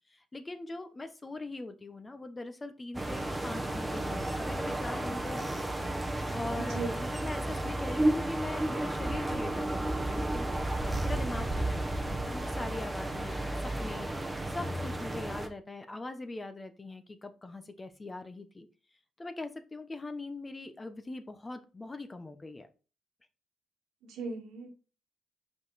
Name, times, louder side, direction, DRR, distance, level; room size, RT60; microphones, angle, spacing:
voice 1, 0.1-5.5 6.3-10.5 11.0-14.1 14.5-18.7 19.2-22.7, left 2 dB, 20° left, 9 dB, 0.9 m, -41 dB
sound 1, 2.9-15.5, right 1 dB, 10° right, 1.1 m, -32 dB
voice 2, 6.6-6.9 24.0-24.7, right 3 dB, 85° right, 2 dB, 1.9 m, -37 dB
5.3 x 5.1 x 4.1 m, 0.34 s
cardioid pair, 90°, 0 cm